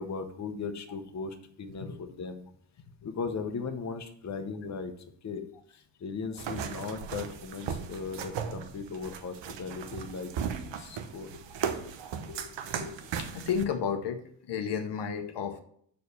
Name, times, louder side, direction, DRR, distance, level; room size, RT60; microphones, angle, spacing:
voice 1, 0.0-2.5 3.0-4.9 5.2-5.4 6.0-10.3 10.8-11.3, left 4 dB, 40° left, 7 dB, 0.9 m, -37 dB
sound 1, 6.4-13.6, right 7 dB, 85° right, 0.9 m, -37 dB
voice 2, 12.3-15.6, left 7 dB, 70° left, 7 dB, 0.9 m, -33 dB
6.5 x 4.6 x 6.8 m, 0.65 s
cardioid pair, 115°, 43 cm